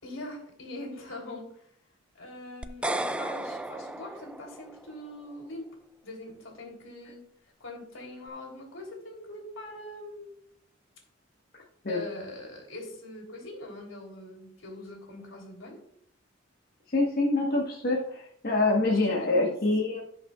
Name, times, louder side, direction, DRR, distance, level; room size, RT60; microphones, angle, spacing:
voice 1, 0.0-1.5 2.2-5.7 6.0-7.2 7.6-10.3 11.9-15.8 18.8-19.5, left 1 dB, 85° left, 0 dB, 3.4 m, -42 dB
sound 1, 2.6-4.9, right 1 dB, 5° right, 0.3 m, -34 dB
voice 2, 16.9-20.0, left 2 dB, 50° left, -3 dB, 1.4 m, -25 dB
17.0 x 5.9 x 2.4 m, 0.70 s
head